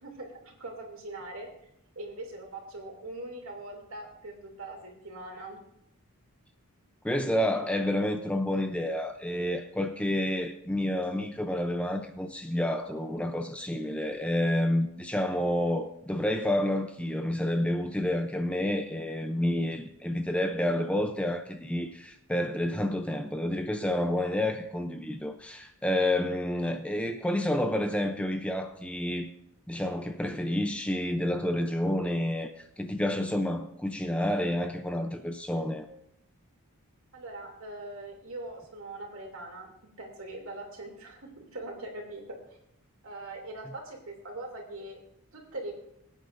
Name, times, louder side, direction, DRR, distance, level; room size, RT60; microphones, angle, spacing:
voice 1, 0.0-1.5 1.9-5.6 37.1-39.7 40.0-42.4 43.0-45.0 45.3-45.7, right 2 dB, 65° right, 2.8 m, -41 dB
voice 2, 7.0-29.3 29.7-35.9, left 1 dB, 5° left, 0.5 m, -29 dB
22.5 x 8.8 x 2.6 m
head